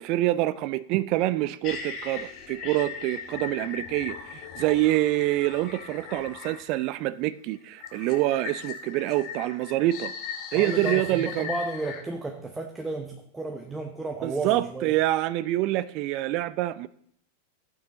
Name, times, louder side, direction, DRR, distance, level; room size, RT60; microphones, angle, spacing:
voice 1, 0.0-10.1 10.5-11.5 14.2-16.9, right 16 dB, 40° right, 0.3 m, -26 dB
sound 1, 1.6-6.9 7.8-12.0, left 6 dB, 40° left, 1.9 m, -38 dB
voice 2, 10.5-14.9, right 2 dB, 10° right, 0.8 m, -33 dB
15.0 x 9.0 x 2.9 m
figure-of-eight pair, 90°, 0 cm